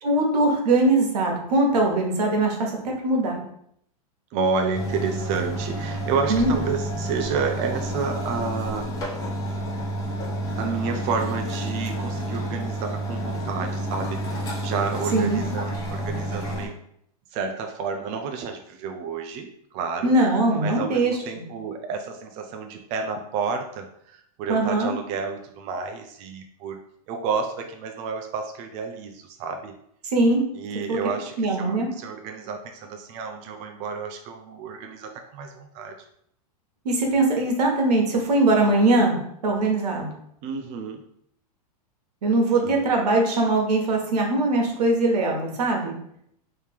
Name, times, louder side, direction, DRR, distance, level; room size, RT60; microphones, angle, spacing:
voice 1, 0.0-3.4 6.3-6.5 15.1-15.4 20.0-21.4 24.5-24.9 30.1-30.5 30.9-31.0 31.4-31.9 36.8-39.2 39.4-40.1 42.2-45.9, right 2 dB, 85° right, 1 dB, 1.1 m, -21 dB
voice 2, 4.3-9.1 10.6-16.7 17.3-20.1 20.6-26.8 27.1-29.7 30.5-36.0 40.4-41.0 42.6-42.9, right 5 dB, 35° right, 4 dB, 0.4 m, -30 dB
sound 1, 4.7-16.7, right 1 dB, 20° left, 1.1 m, -30 dB
3.2 x 2.8 x 3.4 m, 0.71 s
supercardioid pair, 135°, 20 cm